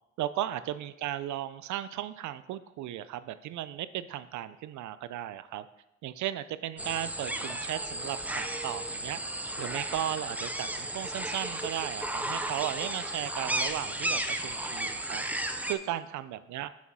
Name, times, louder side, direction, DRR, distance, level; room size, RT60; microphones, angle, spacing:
voice 1, 0.2-5.7 6.0-9.2 9.6-15.2 15.7-16.7, right 12 dB, 75° right, 14 dB, 0.5 m, -36 dB
sound 1, 6.8-15.7, right 1 dB, 5° right, 0.5 m, -34 dB
6.2 x 5.5 x 4.6 m, 0.89 s
cardioid pair, 90°, 30 cm